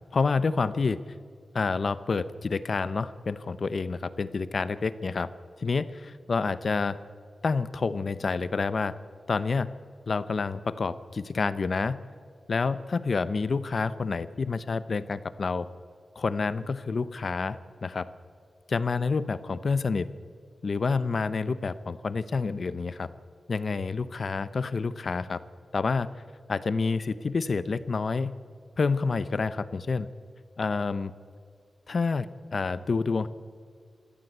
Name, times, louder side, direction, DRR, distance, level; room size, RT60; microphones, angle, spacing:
voice 1, 0.1-1.0 1.5-5.3 5.6-7.0 7.4-8.9 9.3-9.7 10.1-12.0 12.5-15.7 16.2-18.1 18.7-20.1 20.6-23.1 23.5-25.4 25.7-26.1 26.5-28.3 28.8-30.1 30.6-31.1 31.9-33.3, left 4 dB, 50° left, 14 dB, 0.9 m, -28 dB
27.0 x 14.0 x 8.1 m, 2.1 s
wide cardioid pair, 140°, 0 cm